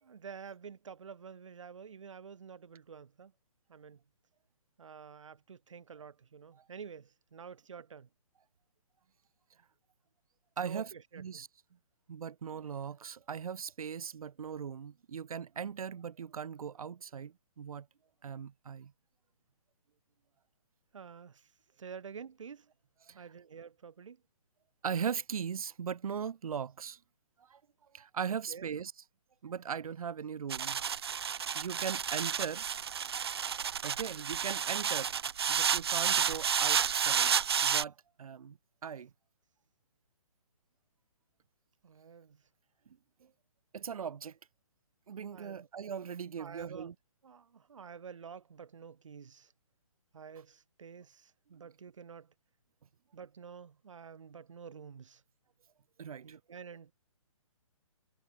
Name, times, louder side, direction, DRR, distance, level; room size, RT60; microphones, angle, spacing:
voice 1, 0.0-3.3 3.7-4.0 4.8-8.1 10.6-11.5 20.9-21.5 21.8-22.7 23.1-24.2 28.5-28.7 41.8-42.4 45.3-45.7 46.4-46.9 47.2-49.5 50.1-52.3 53.1-55.2 56.2-56.9, right 6 dB, 60° right, 2.1 m, -49 dB
voice 2, 10.6-10.9 11.2-11.5 12.1-17.9 18.2-18.9 23.1-23.3 24.8-27.0 27.4-27.6 27.9-28.9 29.4-30.8 31.3-32.7 33.8-35.1 35.5-37.3 37.6-39.1 43.2-43.3 43.7-44.4 45.1-46.9 56.0-56.4, right 7 dB, 90° right, 0.6 m, -39 dB
sound 1, 30.5-37.8, right 7 dB, 45° right, 0.7 m, -31 dB
hypercardioid pair, 175°, 18 cm